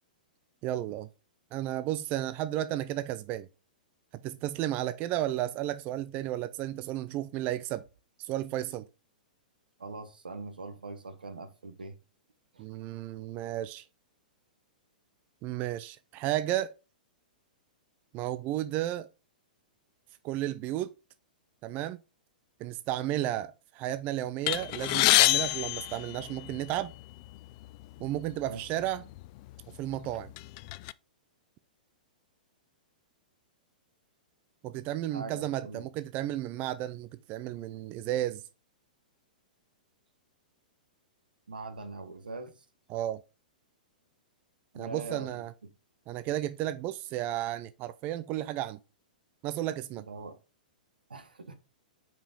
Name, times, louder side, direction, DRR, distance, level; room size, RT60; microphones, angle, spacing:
voice 1, 0.6-1.1 1.5-3.5 4.2-7.8 8.2-8.9 12.6-13.9 15.4-16.7 18.1-19.1 20.2-20.9 21.6-22.0 22.6-26.9 28.0-29.0 29.8-30.3 34.6-38.4 42.9-43.2 44.8-45.5 46.1-48.8 49.4-50.0, right 13 dB, 35° right, 0.4 m, -33 dB
voice 2, 9.8-11.9 12.5-12.6 28.5-28.7 30.0-30.2 35.1-35.9 41.5-42.6 44.7-45.5 49.9-50.4 51.1-51.5, right 3 dB, 85° right, 1.3 m, -42 dB
sound 1, 24.5-26.8 27.6-27.8 28.1-28.3 29.1-29.3 29.8-30.9, left 20 dB, 45° left, 0.4 m, -26 dB
5.5 x 5.1 x 5.2 m
hypercardioid pair, 115°, 5 cm